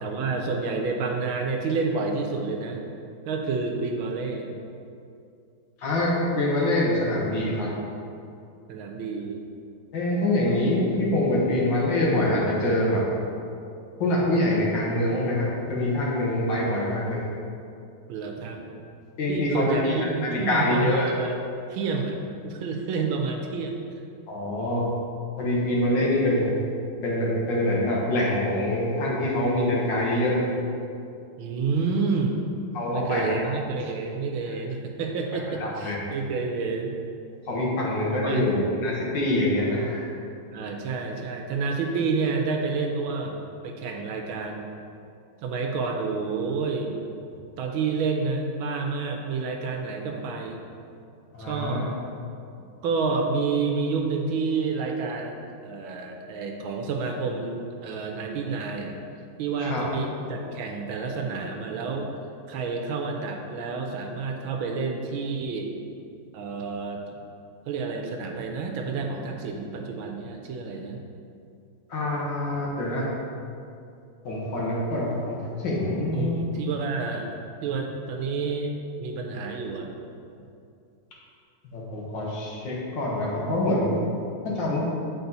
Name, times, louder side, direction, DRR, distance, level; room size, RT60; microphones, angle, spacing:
voice 1, 0.0-2.8 3.2-4.5 8.7-9.4 18.1-18.6 19.3-21.4 21.7-24.0 31.4-32.4 32.9-36.9 38.2-38.4 40.5-43.3 43.6-44.7 45.4-47.0 47.6-50.6 51.4-51.9 52.8-55.4 55.6-59.0 59.4-62.1 62.5-65.7 66.3-67.2 67.7-71.0 76.1-77.3 77.6-78.7 79.0-79.9, right 4 dB, 80° right, 2 dB, 1.5 m, -29 dB
voice 2, 5.8-7.7 9.9-13.0 14.0-17.2 19.2-19.9 20.2-21.1 24.3-24.9 25.4-26.5 27.0-30.5 32.7-33.2 35.6-36.0 37.5-40.1 51.3-51.9 59.6-59.9 71.9-73.1 74.2-75.4 75.6-76.4 81.7-84.0 84.4-84.8, left 1 dB, 60° left, -4 dB, 1.8 m, -25 dB
8.2 x 4.3 x 4.0 m, 2.6 s
omnidirectional pair, 2.3 m